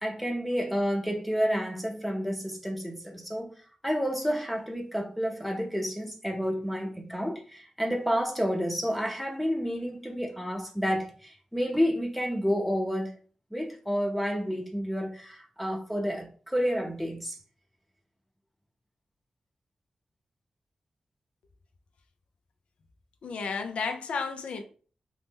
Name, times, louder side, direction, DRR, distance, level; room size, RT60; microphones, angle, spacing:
voice 1, 0.0-3.5 3.8-13.1 13.5-17.4, equal, 5° left, 0.6 m, -30 dB
voice 2, 23.2-24.6, left 5 dB, 90° left, 0.4 m, -32 dB
2.9 x 2.0 x 3.5 m
cardioid pair, 50°, 2 cm